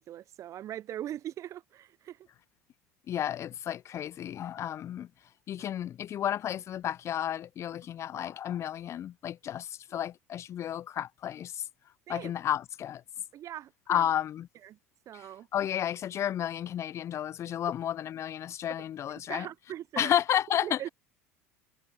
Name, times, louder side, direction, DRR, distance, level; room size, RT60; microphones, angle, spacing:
voice 1, 0.0-2.3 5.6-5.7 12.1-12.3 13.3-14.1 14.6-14.8 15.1-15.5 19.3-20.1 20.6-20.9, right 12 dB, 40° right, 0.6 m, -41 dB
voice 2, 3.1-5.1 5.5-11.6 12.1-13.0 13.9-14.5 15.1-19.5 20.0-20.9, left 10 dB, 35° left, 0.4 m, -32 dB
figure-of-eight pair, 75°, 8 cm